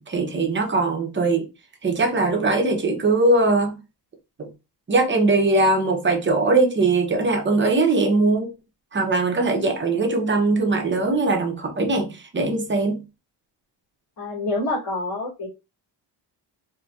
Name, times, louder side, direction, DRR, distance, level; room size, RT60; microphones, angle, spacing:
voice 1, 0.1-1.4 1.8-3.8 4.4-4.5 4.9-8.5 8.9-13.0, right 3 dB, 25° right, 0.8 m, -21 dB
voice 2, 14.2-15.5, left 2 dB, 55° left, 2.1 m, -27 dB
4.1 x 2.7 x 2.3 m
cardioid pair, 130°, 42 cm